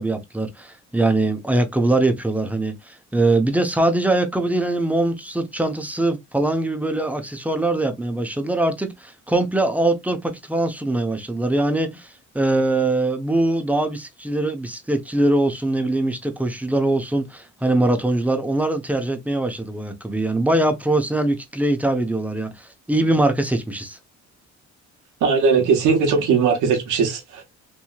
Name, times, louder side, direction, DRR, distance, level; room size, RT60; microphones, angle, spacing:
voice 1, 0.0-24.0, right 2 dB, 5° right, 0.7 m, -22 dB
voice 2, 25.2-27.4, right 5 dB, 80° right, 1.0 m, -19 dB
3.0 x 2.7 x 2.3 m
cardioid pair, 90°, 30 cm